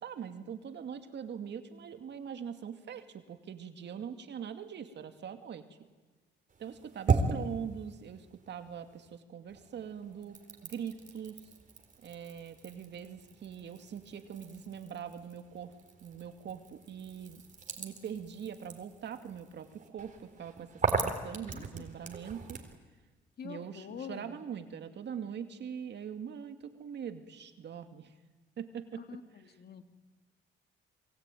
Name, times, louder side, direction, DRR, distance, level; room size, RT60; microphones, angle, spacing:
voice 1, 0.0-5.6 6.6-11.5 12.0-15.7 16.0-17.4 17.8-22.6 23.4-28.1 28.6-29.6, right 8 dB, 60° right, 7 dB, 2.4 m, -42 dB
sound 1, 6.5-9.2 9.5-22.8, right 4 dB, 40° right, 3.9 m, -38 dB
voice 2, 21.0-21.6 23.4-24.4 29.0-29.2 29.6-29.8, left 7 dB, 55° left, 8 dB, 2.3 m, -45 dB
28.0 x 22.5 x 9.2 m, 1.3 s
cardioid pair, 90°, 20 cm